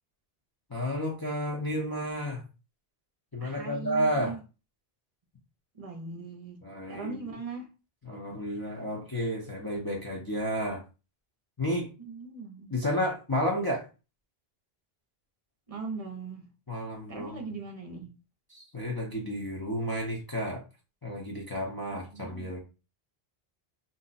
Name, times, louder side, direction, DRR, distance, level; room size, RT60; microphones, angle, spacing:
voice 1, 0.7-2.4 3.3-4.3 6.6-7.3 8.1-10.8 11.6-11.9 12.7-13.9 16.7-17.5 18.5-20.6 21.0-22.6, equal, 25° left, 0.6 m, -31 dB
voice 2, 3.4-4.4 5.7-6.6 6.9-7.7 12.0-12.7 15.7-16.5 17.1-18.1 21.9-22.5, right 4 dB, 40° right, 0.6 m, -40 dB
2.6 x 2.1 x 4.0 m
omnidirectional pair, 1.0 m